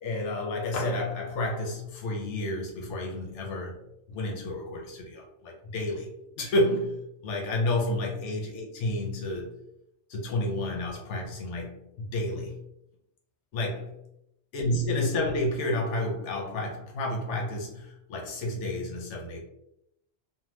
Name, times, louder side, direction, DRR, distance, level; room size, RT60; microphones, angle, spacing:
voice 1, 0.0-3.8 4.1-6.1 6.4-7.0 7.2-9.5 10.1-12.5 13.5-13.9 14.5-19.4, left 1 dB, 90° left, 0 dB, 1.0 m, -30 dB
2.8 x 2.1 x 3.1 m, 0.80 s
omnidirectional pair, 1.2 m